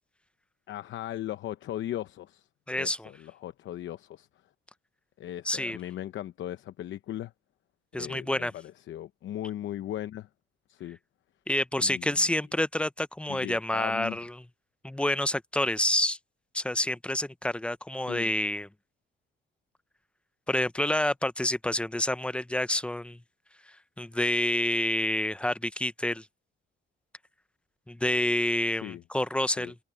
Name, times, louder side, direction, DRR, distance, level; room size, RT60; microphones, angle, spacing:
voice 1, 0.7-4.3 5.2-7.3 8.0-10.3 10.7-11.0 11.8-12.3 13.3-14.2 18.1-18.3 28.8-29.0 29.6-29.7, left 12 dB, 75° left, 0.8 m, -38 dB
voice 2, 2.7-3.1 5.4-5.8 7.9-8.5 11.5-14.4 14.8-16.2 16.5-18.7 20.5-23.2 24.0-26.3 27.9-29.8, left 1 dB, 5° left, 0.7 m, -28 dB
cardioid pair, 90°, 20 cm